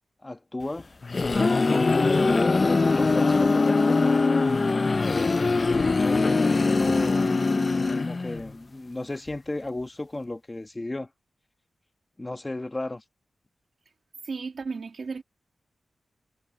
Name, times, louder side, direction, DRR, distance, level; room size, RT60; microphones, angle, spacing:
voice 1, 0.2-0.9 2.1-4.2 5.7-7.3 8.0-11.1 12.2-13.0, left 2 dB, 20° left, 1.3 m, -34 dB
sound 1, 0.8-8.5, left 3 dB, 35° left, 0.5 m, -22 dB
voice 2, 14.2-15.2, right 4 dB, 55° right, 1.7 m, -34 dB
wide cardioid pair, 115°, 0 cm